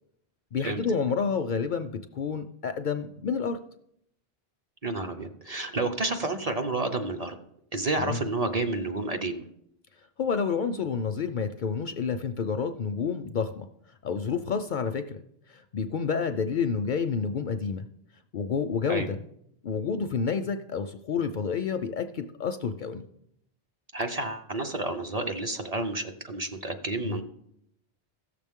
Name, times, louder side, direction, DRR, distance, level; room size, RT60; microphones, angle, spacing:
voice 1, 0.5-3.6 8.0-8.2 10.2-13.7 14.0-15.2 15.5-17.9 18.3-19.2 19.6-23.0 27.0-27.2, left 6 dB, 60° left, 8 dB, 0.6 m, -29 dB
voice 2, 4.8-7.4 7.7-9.4 18.9-19.1 23.9-27.2, right 2 dB, 40° right, 5 dB, 0.7 m, -30 dB
16.0 x 6.8 x 3.6 m, 0.75 s
omnidirectional pair, 1.1 m